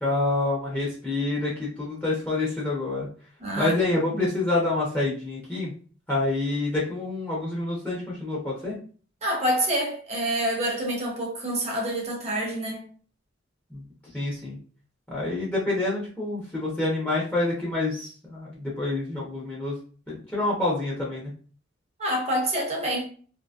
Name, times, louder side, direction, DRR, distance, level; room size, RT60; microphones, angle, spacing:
voice 1, 0.0-3.1 3.6-5.7 6.1-8.8 13.7-13.8 14.1-14.6 15.1-19.7 20.1-21.3, left 2 dB, 10° left, 0.8 m, -27 dB
voice 2, 3.4-4.3 9.2-12.8 22.0-23.1, right 1 dB, 35° right, 0.8 m, -27 dB
2.7 x 2.7 x 2.4 m
head